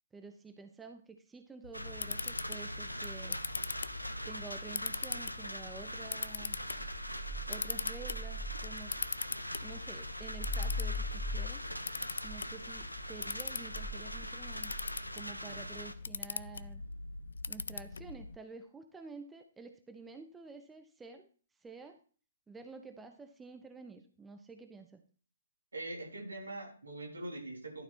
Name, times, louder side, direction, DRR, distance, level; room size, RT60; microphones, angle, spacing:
voice 1, 0.1-3.4 4.3-6.6 7.5-9.0 9.6-11.6 12.2-14.7 15.1-16.8 17.5-21.3 21.6-22.0 22.5-25.0, right 4 dB, 10° right, 7 dB, 0.6 m, -50 dB
Camera, 1.6-18.4, left 5 dB, 65° left, 0.3 m, -42 dB
sound 1, 1.7-15.9, equal, 90° left, 0.8 m, -42 dB
sound 2, 5.7-9.1 9.5-15.0, left 1 dB, 25° left, 1.1 m, -41 dB
voice 2, 25.7-27.8, right 2 dB, 70° right, 0 dB, 3.5 m, -43 dB
11.5 x 4.3 x 4.3 m, 0.40 s
figure-of-eight pair, 125°, 0 cm